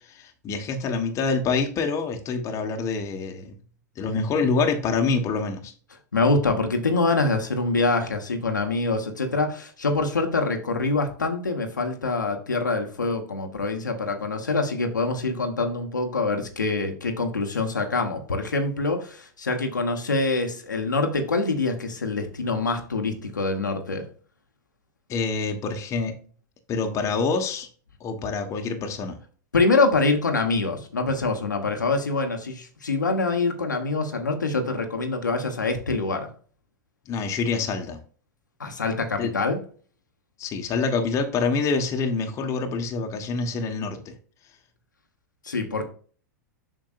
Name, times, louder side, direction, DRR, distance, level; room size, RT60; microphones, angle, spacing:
voice 1, 0.1-3.5 4.0-5.7 25.1-26.1 26.7-27.7 28.0-29.2 37.1-38.0 39.2-39.3 40.4-44.1, left 4 dB, 30° left, 4 dB, 1.3 m, -26 dB
voice 2, 6.1-24.1 29.5-36.3 38.6-39.6 45.4-45.9, left 3 dB, 85° left, 4 dB, 1.2 m, -25 dB
7.5 x 5.9 x 2.5 m, 0.42 s
figure-of-eight pair, 95°, 10 cm